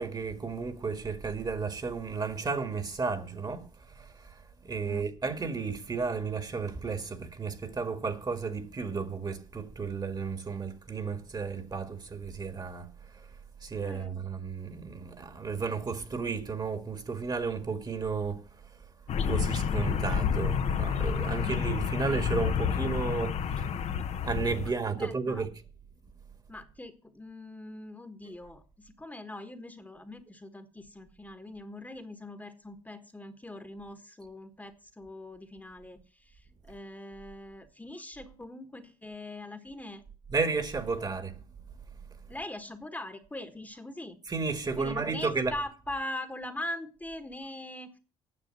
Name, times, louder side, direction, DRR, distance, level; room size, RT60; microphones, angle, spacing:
voice 1, 0.0-18.9 19.2-23.9 24.2-25.5 40.3-41.4 42.0-42.2 44.3-45.6, right 4 dB, 30° right, 1.8 m, -33 dB
voice 2, 4.8-5.3 13.8-14.2 21.2-21.9 25.0-25.4 26.5-40.0 42.3-44.2 44.8-47.9, left 1 dB, 10° left, 1.4 m, -42 dB
sound 1, 19.1-24.7, left 7 dB, 55° left, 1.0 m, -29 dB
9.6 x 6.8 x 7.7 m
supercardioid pair, 75°, 14 cm